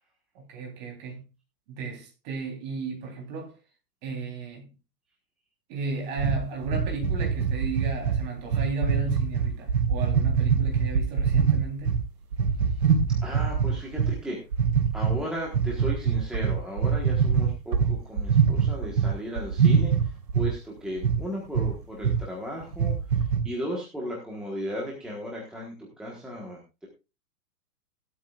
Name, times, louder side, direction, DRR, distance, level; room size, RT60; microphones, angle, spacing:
voice 1, 0.3-1.2 1.7-3.5 4.0-4.7 5.7-12.0, right 3 dB, 25° right, 3.6 m, -34 dB
sound 1, 6.2-12.0 12.3-14.1 14.5-15.1 15.5-19.1 19.4-20.5 21.0-21.2 21.5-21.7 22.0-22.2 22.6-23.4, right 6 dB, 75° right, 4.1 m, -23 dB
voice 2, 13.2-14.4 14.9-26.9, equal, ahead, 1.3 m, -36 dB
16.5 x 12.5 x 2.4 m
hypercardioid pair, 170°, 49 cm